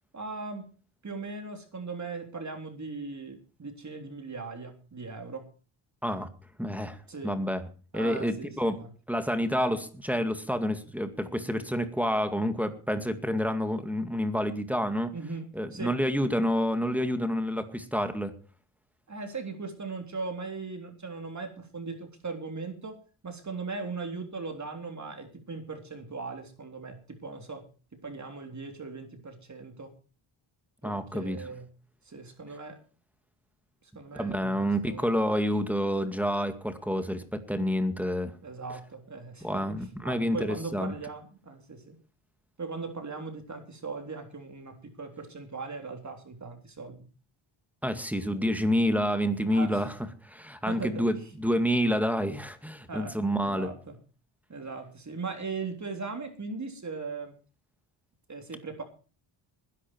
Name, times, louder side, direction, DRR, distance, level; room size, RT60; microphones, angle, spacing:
voice 1, 0.1-0.7 1.0-5.5 7.1-7.4 7.9-8.9 15.1-15.5 15.7-15.9 19.1-23.0 23.2-27.7 28.0-29.9 30.8-31.7 32.1-32.8 34.0-35.1 38.4-39.6 40.0-41.9 42.6-47.1 49.5-49.8 50.7-51.1 52.9-54.0 54.5-57.3 58.3-58.8, right 4 dB, 35° right, 5 dB, 3.6 m, -39 dB
voice 2, 6.6-7.6 7.9-8.8 9.1-15.1 15.5-18.3 30.8-31.5 34.1-38.4 39.4-41.0 47.8-49.9 50.2-53.7, equal, 5° right, 8 dB, 2.1 m, -28 dB
20.5 x 11.0 x 4.6 m, 0.38 s
cardioid pair, 95°, 49 cm